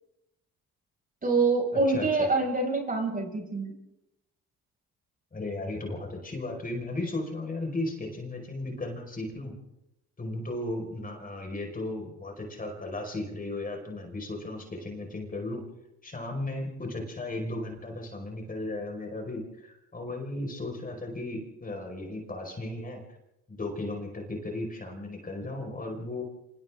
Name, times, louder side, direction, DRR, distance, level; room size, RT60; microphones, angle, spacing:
voice 1, 1.2-3.7, right 3 dB, 30° right, 1 dB, 6.4 m, -26 dB
voice 2, 1.9-2.3 5.3-9.5 10.2-15.6 16.0-23.0 23.5-26.2, left 2 dB, 30° left, 2 dB, 5.2 m, -35 dB
30.0 x 26.0 x 3.8 m, 0.92 s
cardioid pair, 90°, 30 cm